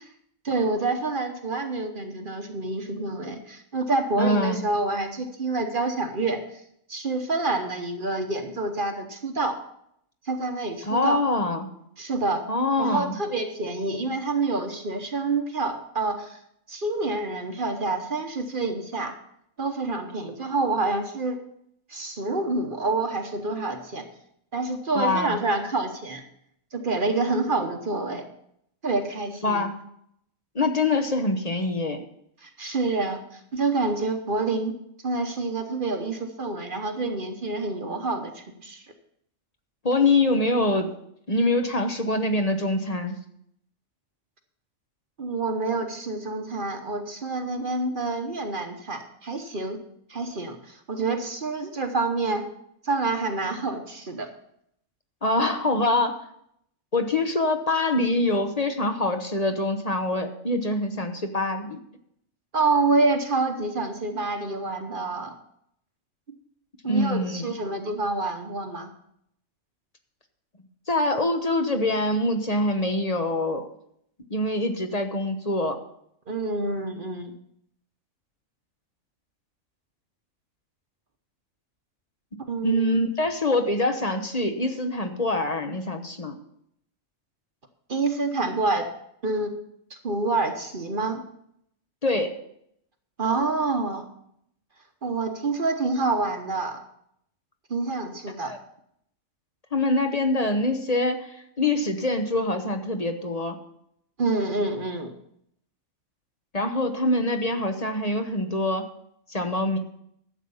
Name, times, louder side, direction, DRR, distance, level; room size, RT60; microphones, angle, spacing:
voice 1, 0.4-6.4 6.9-9.6 10.2-11.2 12.0-12.5 12.8-16.4 16.7-19.1 19.6-21.4 21.9-24.1 24.5-26.2 26.7-28.3 28.8-29.6 32.4-34.7 35.0-38.9 45.2-49.8 50.1-52.4 52.8-54.3 62.5-65.3 66.8-68.9 76.3-77.3 82.5-83.0 87.9-88.9 89.2-89.5 89.9-91.2 93.2-94.1 95.0-96.8 97.7-98.5 104.2-105.1, right 3 dB, 40° right, 6 dB, 1.1 m, -27 dB
voice 2, 4.2-4.6 10.8-11.7 12.5-13.2 24.9-25.4 29.4-29.7 30.5-32.0 39.8-40.9 41.3-43.2 55.2-56.2 56.9-61.8 66.9-67.5 70.9-73.6 74.3-75.8 82.6-86.4 92.0-92.3 98.4-98.6 99.7-103.6 106.5-108.9 109.3-109.8, left 2 dB, 30° left, 6 dB, 0.9 m, -24 dB
12.0 x 7.9 x 5.5 m, 0.72 s
omnidirectional pair, 1.4 m